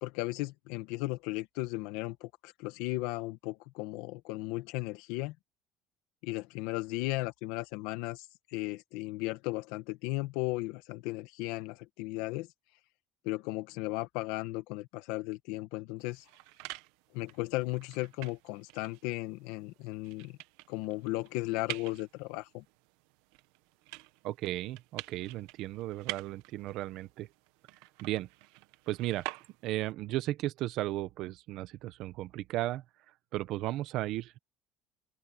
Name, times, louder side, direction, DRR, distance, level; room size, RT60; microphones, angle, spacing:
voice 1, 0.0-5.3 6.2-12.5 13.2-16.2 17.1-20.4 20.7-22.6, left 19 dB, 85° left, 1.6 m, -36 dB
sound 1, 16.0-29.9, right 19 dB, 90° right, 1.3 m, -48 dB
voice 2, 24.2-27.3 28.0-28.3 28.9-29.2 29.6-32.8 33.3-34.4, right 15 dB, 60° right, 1.1 m, -35 dB
open air
cardioid pair, 150°, 0 cm